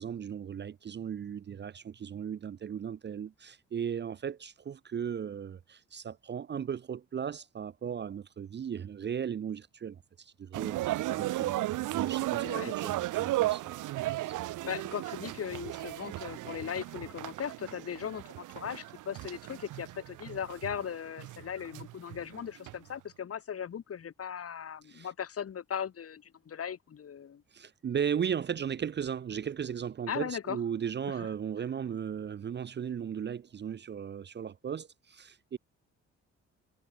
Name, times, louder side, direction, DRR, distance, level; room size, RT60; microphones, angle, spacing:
voice 1, 0.0-11.6 11.9-14.2 24.9-25.1 27.5-35.6, right 8 dB, 35° right, 0.6 m, -36 dB
sound 1, 10.5-22.8, right 16 dB, 90° right, 1.8 m, -35 dB
voice 2, 12.4-12.8 14.6-27.4 30.1-30.6 31.1-31.3, left 8 dB, 50° left, 3.1 m, -38 dB
cardioid pair, 90°, 30 cm